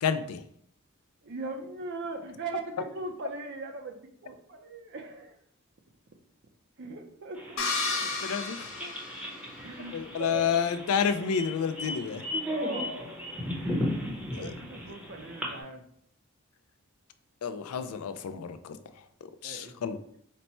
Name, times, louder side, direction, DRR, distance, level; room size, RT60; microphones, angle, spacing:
voice 1, 0.0-0.4 8.2-8.9 9.9-12.2 14.3-14.5 17.4-18.8 19.4-20.0, left 7 dB, 80° left, 10 dB, 0.4 m, -30 dB
voice 2, 1.2-5.4 6.8-8.2 9.6-10.5 12.5-13.2 14.4-15.8 19.4-19.7, right 2 dB, 50° right, 5 dB, 0.5 m, -39 dB
sound 1, 7.3-15.6, left 1 dB, 5° right, 0.7 m, -36 dB
sound 2, 7.6-9.8, left 3 dB, 65° left, 0.7 m, -33 dB
4.1 x 2.1 x 4.2 m, 0.68 s
head